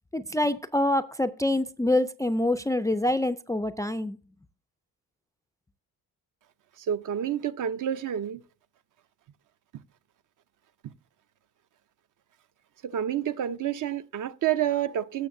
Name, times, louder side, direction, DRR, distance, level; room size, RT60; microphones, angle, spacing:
voice 1, 0.1-4.2, left 1 dB, 10° left, 0.3 m, -26 dB
voice 2, 6.9-8.4 10.8-10.9 12.8-15.3, right 10 dB, 55° right, 0.7 m, -29 dB
17.0 x 6.5 x 2.6 m
cardioid pair, 120°, 37 cm